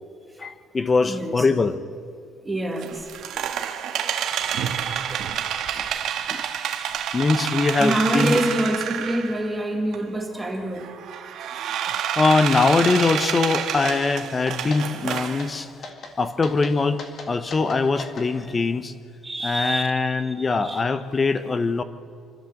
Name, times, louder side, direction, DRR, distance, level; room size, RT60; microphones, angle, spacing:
voice 1, 0.4-1.8 5.8-5.9 6.3-6.4 7.1-8.4 12.2-15.7 16.2-17.0 17.3-18.9 19.4-21.8, left 4 dB, 20° left, 12 dB, 0.8 m, -22 dB
voice 2, 1.1-1.5 2.4-3.1 3.4-5.5 5.8-6.0 7.1-7.2 7.8-10.9 11.6-12.0 15.6-15.7 18.5-18.6 19.2-20.0 20.2-20.9, right 1 dB, 10° right, 2 dB, 1.9 m, -28 dB
sound 1, 2.8-9.5 9.9-10.0 10.8-15.5, right 9 dB, 60° right, 1.5 m, -28 dB
sound 2, 12.5-12.7 13.0-13.4 13.8-14.1 14.5-14.8 15.2-15.5 15.8-16.1 16.4-18.3, left 3 dB, 40° left, 2.2 m, -39 dB
26.0 x 13.5 x 7.7 m, 2.3 s
cardioid pair, 170°, 0 cm